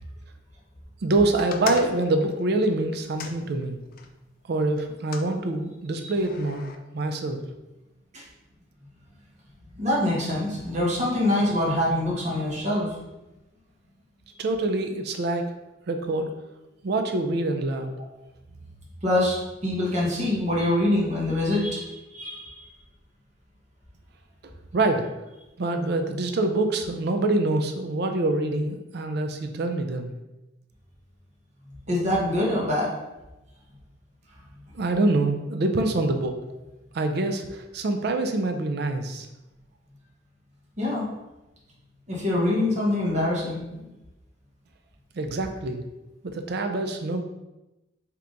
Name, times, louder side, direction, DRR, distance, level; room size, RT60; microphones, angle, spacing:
voice 1, 1.0-3.8 4.5-6.6 6.9-7.4 14.4-15.5 15.9-16.3 16.8-17.9 24.4-25.1 25.6-30.1 34.7-36.4 36.9-39.3 45.2-45.8 46.2-47.2, right 2 dB, 60° right, 5 dB, 0.4 m, -25 dB
sound 1, 1.4-4.1 4.8-5.3 6.1-6.8, left 5 dB, 50° left, 0.4 m, -39 dB
voice 2, 9.8-13.0 19.0-19.4 19.6-22.6 31.9-32.9 40.8-41.0 42.1-43.9, left 1 dB, 40° right, -5 dB, 1.2 m, -24 dB
3.4 x 2.9 x 3.8 m, 0.98 s
head